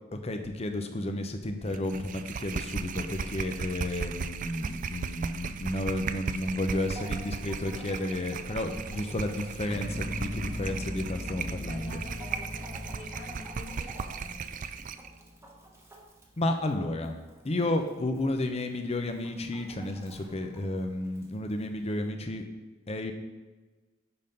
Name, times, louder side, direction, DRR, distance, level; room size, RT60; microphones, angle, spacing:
voice 1, 0.1-12.0 16.4-17.2 17.4-22.4 22.9-23.1, left 1 dB, 35° left, 6 dB, 0.7 m, -32 dB
sound 1, 1.7-15.1, right 5 dB, 40° right, 0.3 m, -37 dB
Chicken rooster, 6.5-22.1, right 1 dB, 15° right, 1.1 m, -52 dB
sound 2, 9.6-15.6, left 1 dB, 60° right, 1.5 m, -40 dB
voice 2, 11.7-14.6, left 2 dB, 65° left, -2 dB, 2.1 m, -47 dB
10.0 x 3.8 x 5.3 m, 1.2 s
head